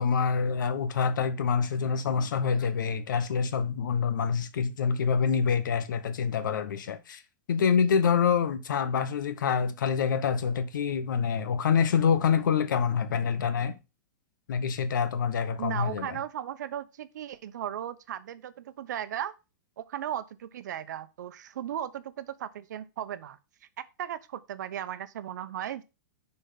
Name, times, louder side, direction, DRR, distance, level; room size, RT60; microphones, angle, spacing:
voice 1, 0.0-7.2 7.5-13.8 14.5-16.2, left 6 dB, 90° left, 1.1 m, -26 dB
voice 2, 15.5-19.3 19.8-23.4 23.8-25.8, right 10 dB, 70° right, 0.8 m, -36 dB
6.9 x 4.5 x 5.7 m
supercardioid pair, 175°, 10 cm